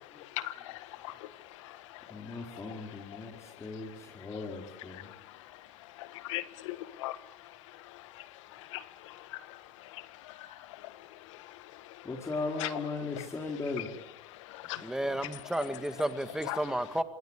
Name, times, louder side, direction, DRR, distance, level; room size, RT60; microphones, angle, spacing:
voice 1, 0.0-12.1 12.6-12.7 13.1-13.3 14.3-14.9 16.5-16.6, left 16 dB, 75° left, 13 dB, 1.7 m, -43 dB
voice 2, 2.1-5.1 12.0-13.9, left 3 dB, 20° left, 1 dB, 5.1 m, -38 dB
voice 3, 14.8-17.0, right 1 dB, 5° right, 9 dB, 2.2 m, -32 dB
27.0 x 18.5 x 8.6 m, 0.88 s
supercardioid pair, 105°, 16 cm